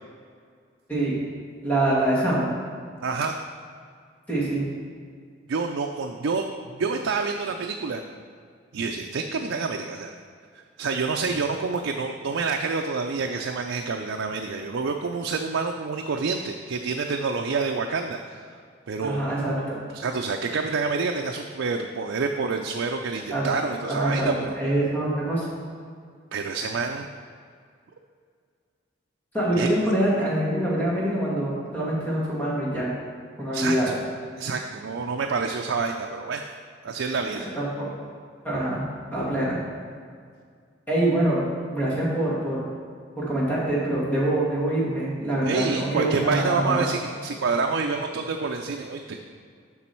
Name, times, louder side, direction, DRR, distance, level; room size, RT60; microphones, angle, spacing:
voice 1, 1.6-2.5 4.3-4.7 19.0-19.8 23.3-23.4 23.8-24.3 24.6-25.5 29.3-32.9 33.4-33.9 37.3-37.9 38.4-38.8 39.1-39.6 40.9-42.6 43.2-46.8, right 1 dB, 10° left, -8 dB, 2.1 m, -25 dB
voice 2, 3.0-3.4 5.5-6.5 6.7-8.0 8.7-10.1 10.8-18.5 18.9-19.2 19.9-24.5 26.3-27.1 29.6-29.7 33.5-34.0 34.4-36.4 36.8-37.5 45.4-49.2, right 4 dB, 85° right, 3 dB, 0.4 m, -27 dB
7.2 x 6.1 x 4.5 m, 2.1 s
head